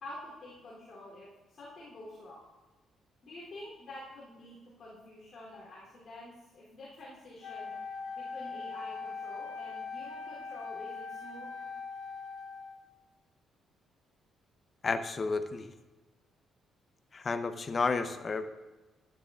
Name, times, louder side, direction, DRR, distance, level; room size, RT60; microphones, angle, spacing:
voice 1, 0.0-2.4 3.2-7.7 8.2-11.5, left 1 dB, 55° left, -8 dB, 2.9 m, -48 dB
Wind instrument woodwind instrument, 7.4-12.9, left 4 dB, 75° left, 1.0 m, -41 dB
voice 2, 14.8-15.7 17.1-18.5, left 4 dB, 35° left, 9 dB, 0.6 m, -31 dB
11.5 x 10.0 x 2.4 m, 1.2 s
cardioid pair, 125°, 0 cm